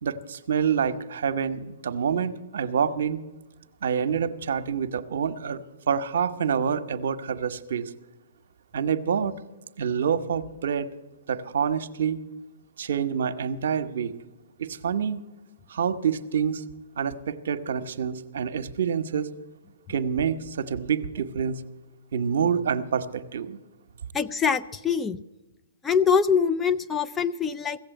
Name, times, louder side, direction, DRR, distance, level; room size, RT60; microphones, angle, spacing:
voice 1, 0.0-3.2 3.8-7.8 8.7-9.4 9.8-10.9 11.3-12.2 12.8-14.1 14.6-15.2 15.7-16.6 17.0-19.3 19.9-21.6 22.1-23.6, right 7 dB, 70° right, 10 dB, 0.9 m, -27 dB
voice 2, 24.1-25.2 25.8-27.8, left 6 dB, 15° left, 12 dB, 0.4 m, -24 dB
16.0 x 7.4 x 9.0 m, 1.1 s
hypercardioid pair, 135°, 0 cm